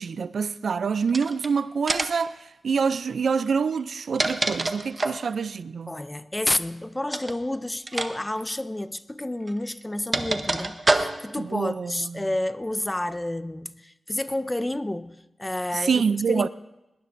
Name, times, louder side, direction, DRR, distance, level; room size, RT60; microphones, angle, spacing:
voice 1, 0.0-2.4 2.6-5.9 11.4-12.3 15.7-16.5, right 5 dB, 65° right, 0.4 m, -26 dB
sound 1, 1.1-1.5 1.9-2.3 3.8-5.3 7.1-7.4 7.9-8.1 8.4-8.5 9.5-11.4, right 2 dB, 30° right, 0.8 m, -26 dB
voice 2, 5.9-16.5, left 1 dB, 10° left, 0.4 m, -30 dB
20.5 x 18.5 x 2.6 m
wide cardioid pair, 165°, 0 cm